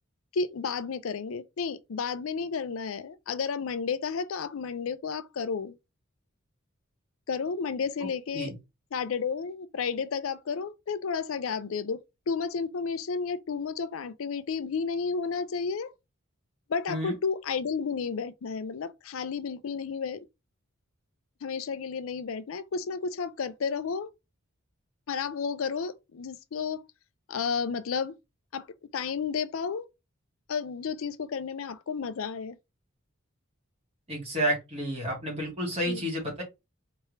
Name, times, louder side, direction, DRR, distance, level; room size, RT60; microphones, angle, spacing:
voice 1, 0.3-5.8 7.3-8.5 8.9-12.0 12.3-15.9 16.7-20.2 21.4-24.1 25.1-26.9 27.3-28.1 28.5-29.9 30.5-32.6 35.9-36.0, left 5 dB, 75° left, 0.5 m, -32 dB
voice 2, 34.1-36.4, right 1 dB, 30° right, 2.4 m, -30 dB
4.3 x 3.4 x 3.2 m
head